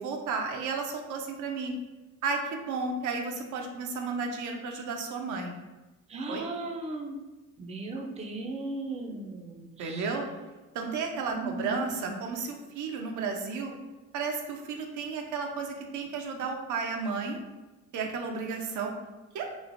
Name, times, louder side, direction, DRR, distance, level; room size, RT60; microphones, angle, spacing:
voice 1, 0.0-1.7 2.2-5.6 6.3-6.5 9.8-10.3 10.7-13.7 14.1-17.4 17.9-18.9 19.3-19.5, right 4 dB, 75° right, 3 dB, 0.5 m, -33 dB
voice 2, 6.1-7.2 7.6-10.1 11.3-12.2, right 2 dB, 20° right, 2 dB, 0.4 m, -36 dB
3.1 x 2.0 x 2.5 m, 1.1 s
cardioid pair, 90°, 30 cm